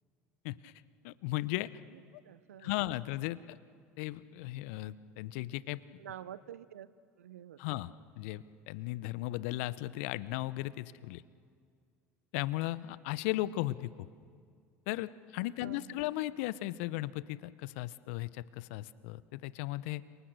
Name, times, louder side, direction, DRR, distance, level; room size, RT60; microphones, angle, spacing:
voice 1, 1.0-1.7 2.6-3.6 4.0-5.8 7.6-7.9 8.2-11.2 12.3-14.1 14.9-20.0, left 17 dB, 70° left, 17 dB, 0.8 m, -36 dB
voice 2, 1.9-2.9 6.0-6.9 7.2-7.8 15.6-16.0, right 10 dB, 85° right, 17 dB, 0.8 m, -49 dB
29.5 x 27.5 x 6.7 m, 2.2 s
hypercardioid pair, 70°, 8 cm